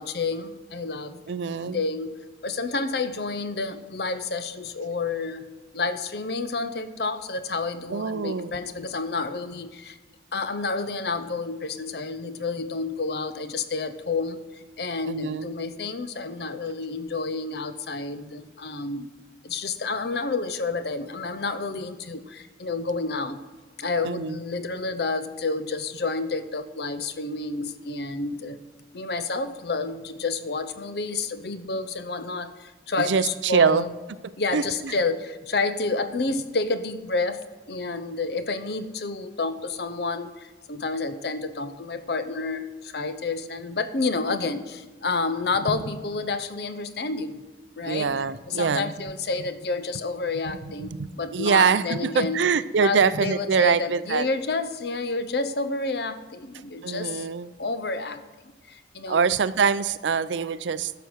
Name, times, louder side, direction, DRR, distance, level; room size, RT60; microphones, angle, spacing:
voice 1, 0.0-1.2 1.5-2.1 2.4-5.5 5.7-10.0 10.3-19.1 19.4-23.4 23.8-28.6 28.9-33.9 34.4-47.4 47.8-48.1 48.5-52.4 52.8-57.3 57.6-58.2 58.7-59.3, left 3 dB, 60° left, 11 dB, 0.7 m, -29 dB
voice 2, 1.3-1.8 7.9-8.6 15.1-15.5 24.0-24.4 33.1-33.8 34.5-34.6 47.9-48.9 50.6-54.3 56.8-57.5 59.1-60.9, right 6 dB, 85° right, 15 dB, 0.5 m, -24 dB
11.0 x 6.9 x 6.2 m, 1.2 s
head